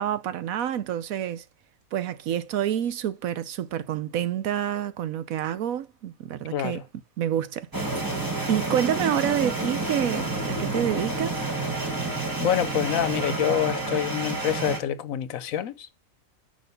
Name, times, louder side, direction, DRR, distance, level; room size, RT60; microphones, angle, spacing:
voice 1, 0.0-1.4 1.9-6.8 7.2-8.0 8.5-11.4, right 10 dB, 85° right, 1.2 m, -28 dB
voice 2, 6.5-6.8 12.4-15.9, left 10 dB, 80° left, 1.2 m, -26 dB
sound 1, 7.7-14.8, right 2 dB, 15° right, 2.2 m, -29 dB
6.3 x 5.3 x 6.7 m
omnidirectional pair, 1.4 m